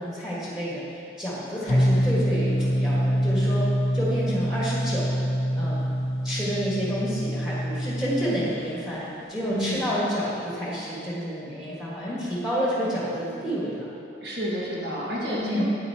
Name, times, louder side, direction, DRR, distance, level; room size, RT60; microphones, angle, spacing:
voice 1, 0.0-3.7 3.9-5.2 5.5-5.8 6.2-13.9 15.4-15.6, equal, 5° right, -7 dB, 1.6 m, -29 dB
sound 1, 1.7-8.5, equal, 40° left, 0.5 m, -25 dB
voice 2, 9.5-9.9 14.2-15.6, equal, 75° right, -5 dB, 1.7 m, -29 dB
9.0 x 8.3 x 2.9 m, 2.7 s
head